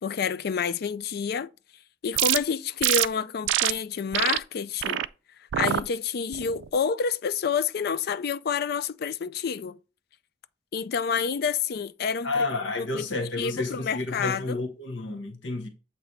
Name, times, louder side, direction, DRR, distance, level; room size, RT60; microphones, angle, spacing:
voice 1, 0.0-1.5 2.0-5.0 5.6-9.8 10.7-12.5 12.8-13.1 13.4-14.6, left 6 dB, 55° left, 0.4 m, -28 dB
sound 1, 2.1-2.4 2.8-3.1 3.5-3.7 4.1-4.4 4.8-5.1 5.5-5.8 6.3-6.7, right 12 dB, 85° right, 0.3 m, -24 dB
voice 2, 12.2-15.7, left 3 dB, 85° left, 1.1 m, -30 dB
8.0 x 3.0 x 4.3 m
head